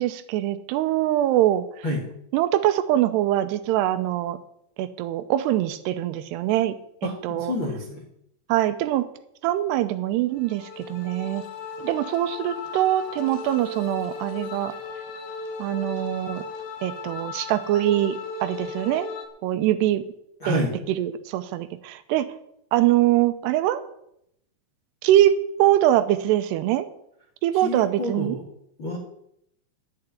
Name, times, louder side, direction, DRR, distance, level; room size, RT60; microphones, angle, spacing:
voice 1, 0.0-1.7 2.3-4.4 4.8-7.5 8.5-9.1 9.4-11.4 11.8-14.7 15.6-16.4 16.8-19.1 19.4-20.0 20.5-22.3 22.7-23.8 25.0-25.3 25.6-26.9 27.4-28.4, right 13 dB, 85° right, 12 dB, 2.8 m, -23 dB
voice 2, 7.0-8.0 20.4-20.7 27.6-28.4 28.8-29.0, left 1 dB, 40° left, -2 dB, 2.0 m, -28 dB
sound 1, 10.3-19.3, left 5 dB, 70° left, 3.4 m, -36 dB
11.5 x 6.8 x 9.5 m, 0.76 s
omnidirectional pair, 4.9 m